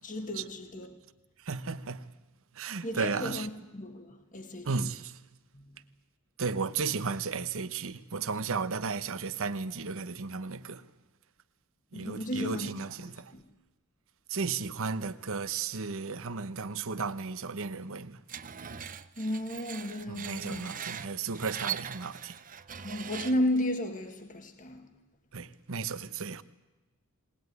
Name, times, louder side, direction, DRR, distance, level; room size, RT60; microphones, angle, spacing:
voice 1, 0.0-1.0 2.8-4.9 5.5-5.8 11.9-12.7 13.3-13.4 19.2-20.6 22.8-24.9, left 1 dB, 35° left, 1.9 m, -33 dB
voice 2, 1.4-2.1 2.5-3.5 4.6-5.2 6.4-10.9 11.9-13.3 14.3-18.2 20.1-22.4 25.3-26.4, right 5 dB, 65° right, 1.0 m, -34 dB
Screech, 18.3-23.6, right 8 dB, 40° right, 0.8 m, -41 dB
21.0 x 19.5 x 9.5 m
head